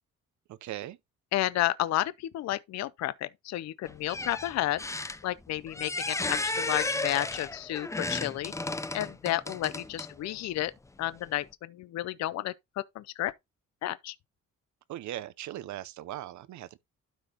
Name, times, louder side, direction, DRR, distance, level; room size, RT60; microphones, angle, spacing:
voice 1, 0.5-1.0 14.9-16.8, right 13 dB, 70° right, 0.6 m, -39 dB
voice 2, 1.3-4.8 5.2-8.5 8.9-10.7 11.0-13.3 13.8-14.2, left 15 dB, 60° left, 0.5 m, -31 dB
sound 1, 3.8-10.3 11.0-11.1, left 2 dB, 10° left, 0.5 m, -34 dB
12.5 x 4.9 x 2.8 m
cardioid pair, 90°, 30 cm